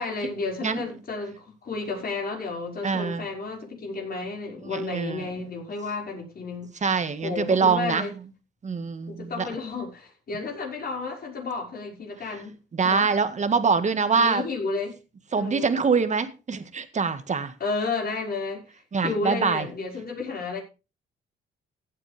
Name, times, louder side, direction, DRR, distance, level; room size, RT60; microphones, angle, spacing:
voice 1, 0.0-6.7 7.2-8.1 9.1-12.5 12.8-13.1 14.1-14.9 15.4-15.7 17.6-18.6 19.0-20.6, left 3 dB, 50° left, 5.8 m, -32 dB
voice 2, 2.8-3.3 4.6-5.3 6.8-8.1 8.6-9.5 12.7-14.4 15.3-17.5 18.9-19.7, right 5 dB, 35° right, 1.8 m, -24 dB
16.0 x 8.9 x 3.5 m
cardioid pair, 90°, 20 cm